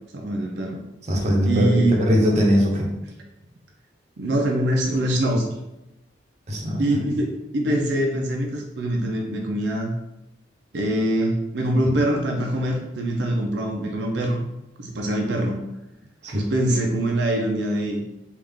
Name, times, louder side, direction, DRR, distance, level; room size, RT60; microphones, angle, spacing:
voice 1, 0.1-0.8 1.4-2.0 4.2-5.4 6.8-9.9 10.7-14.5 14.8-15.6 16.3-18.0, right 1 dB, 75° right, 0 dB, 0.5 m, -23 dB
voice 2, 1.1-2.9 6.5-6.8 16.2-16.4, equal, 40° right, -1 dB, 0.7 m, -20 dB
3.4 x 2.4 x 3.6 m, 0.93 s
head